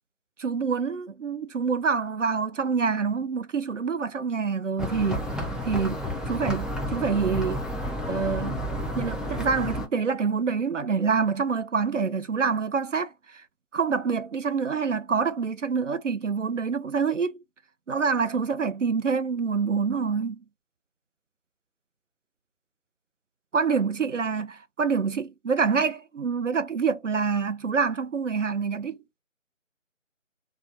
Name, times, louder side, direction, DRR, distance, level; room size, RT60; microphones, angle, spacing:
voice 1, 0.4-5.2 5.6-6.0 6.3-7.6 8.1-8.6 9.0-13.4 13.7-17.4 17.9-20.4 23.5-29.0, right 5 dB, 70° right, 0.5 m, -26 dB
sound 1, 4.8-9.9, equal, ahead, 0.4 m, -31 dB
2.4 x 2.1 x 2.8 m
figure-of-eight pair, 180°, 39 cm